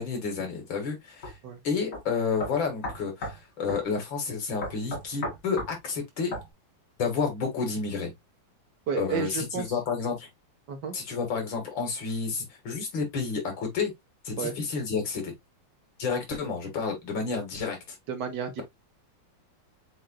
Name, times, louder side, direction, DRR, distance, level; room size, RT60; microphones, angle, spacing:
voice 1, 0.0-1.3 1.6-6.3 7.0-8.1 8.9-10.3 10.9-13.9 14.2-15.3 16.0-18.0, left 5 dB, 85° left, 2.4 m, -30 dB
sound 1, 1.2-1.4 1.9-2.0 2.4-3.4 3.7-3.9 4.6-5.7 6.3-6.5, left 1 dB, 60° left, 2.5 m, -34 dB
voice 2, 8.9-9.8 10.7-10.9 14.4-14.6 18.1-18.6, right 6 dB, 65° right, 1.6 m, -31 dB
7.8 x 2.6 x 2.2 m
omnidirectional pair, 2.0 m